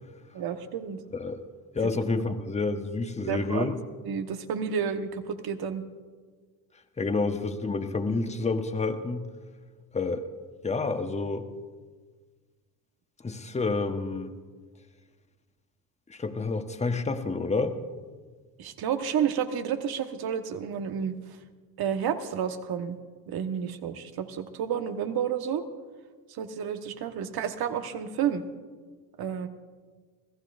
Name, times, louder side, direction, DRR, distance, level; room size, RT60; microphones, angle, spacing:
voice 1, 0.3-1.0 3.3-3.7 4.0-5.8 18.6-21.2 21.8-23.0 23.3-25.6 26.4-28.4 29.2-29.5, right 8 dB, 55° right, 7 dB, 1.4 m, -30 dB
voice 2, 1.7-3.8 7.0-9.2 9.9-10.2 10.6-11.5 13.2-14.3 16.1-17.8, left 3 dB, 15° left, 7 dB, 1.2 m, -29 dB
27.0 x 15.5 x 2.6 m, 1.5 s
supercardioid pair, 75°, 44 cm